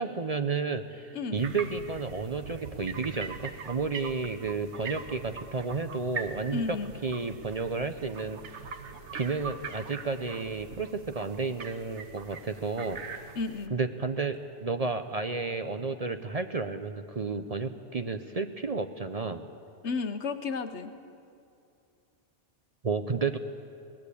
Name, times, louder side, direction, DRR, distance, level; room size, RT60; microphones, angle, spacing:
voice 1, 0.0-6.8 7.0-8.4 9.1-13.0 13.7-19.5 22.8-23.4, right 4 dB, 40° right, 8 dB, 0.7 m, -32 dB
sound 1, 1.3-13.7, right 5 dB, 70° right, 1.3 m, -42 dB
voice 2, 6.5-6.9 13.4-13.8 19.8-20.9, left 4 dB, 70° left, 9 dB, 1.3 m, -32 dB
22.5 x 18.0 x 8.5 m, 2.5 s
omnidirectional pair, 1.2 m